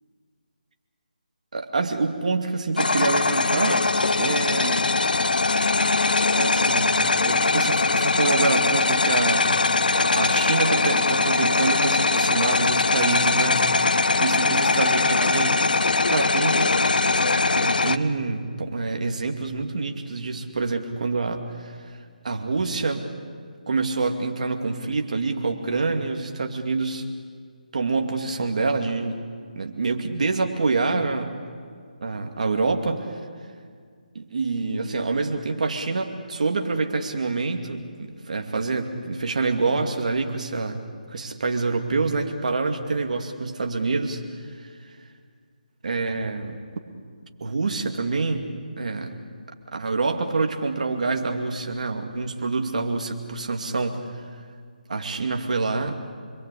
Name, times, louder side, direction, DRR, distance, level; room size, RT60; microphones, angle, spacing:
voice 1, 1.5-3.8 4.2-4.8 6.3-9.5 9.9-15.6 16.0-16.8 17.5-21.8 22.2-23.1 23.7-27.0 27.7-29.2 29.6-31.3 32.0-33.1 34.1-40.8 41.1-44.9 45.8-46.6 47.4-48.5 48.8-49.1 49.7-54.2 54.9-55.9, right 3 dB, 55° right, 4 dB, 2.4 m, -26 dB
sound 1, 2.8-18.0, left 3 dB, 75° left, 1.0 m, -21 dB
26.5 x 22.0 x 8.4 m, 2.1 s
figure-of-eight pair, 165°, 5 cm